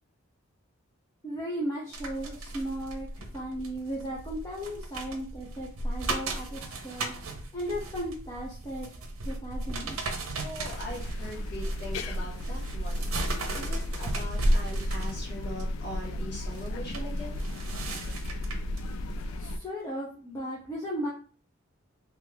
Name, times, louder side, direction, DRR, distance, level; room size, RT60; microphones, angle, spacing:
voice 1, 1.2-8.9 9.2-10.1 19.4-21.1, equal, 15° left, -5 dB, 0.6 m, -36 dB
sound 1, 1.9-18.8 19.3-19.5, right 1 dB, 80° right, 0.6 m, -35 dB
voice 2, 10.3-17.4, equal, 55° left, -2 dB, 1.3 m, -41 dB
sound 2, 10.6-19.6, left 1 dB, 80° left, 0.3 m, -35 dB
2.9 x 2.3 x 3.4 m, 0.41 s
head